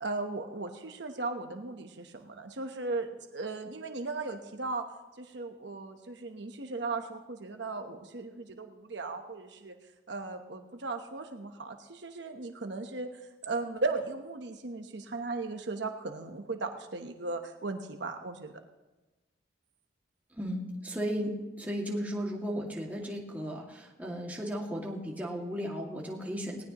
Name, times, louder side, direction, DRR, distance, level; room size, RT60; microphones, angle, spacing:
voice 1, 0.0-4.8 5.2-9.8 10.1-18.6, right 3 dB, 65° right, 5 dB, 1.0 m, -37 dB
voice 2, 20.3-26.6, equal, 10° right, -2 dB, 2.1 m, -35 dB
19.5 x 18.0 x 3.0 m, 1.1 s
head